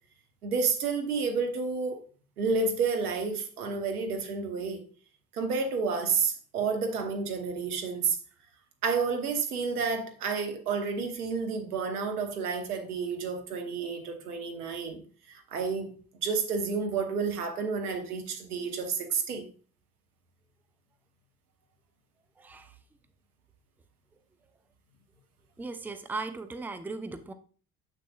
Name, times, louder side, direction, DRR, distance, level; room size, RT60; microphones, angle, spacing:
voice 1, 0.4-2.0 2.4-4.8 5.3-8.2 8.8-19.5, right 5 dB, 85° right, 1.1 m, -30 dB
voice 2, 22.4-22.7 25.6-27.3, right 3 dB, 5° right, 0.5 m, -37 dB
7.6 x 6.4 x 2.4 m
hypercardioid pair, 60°, 44 cm